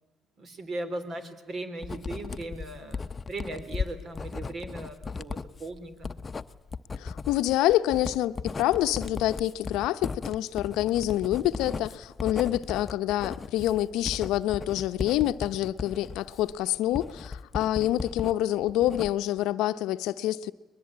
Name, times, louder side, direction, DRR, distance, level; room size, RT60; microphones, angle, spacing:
voice 1, 0.4-6.1, right 2 dB, 50° right, 3.5 m, -38 dB
Writing, 1.8-18.3 18.7-19.4, left 4 dB, 30° left, 0.8 m, -37 dB
voice 2, 7.0-20.5, left 14 dB, 80° left, 0.7 m, -27 dB
22.0 x 20.0 x 8.7 m
supercardioid pair, 75°, 0 cm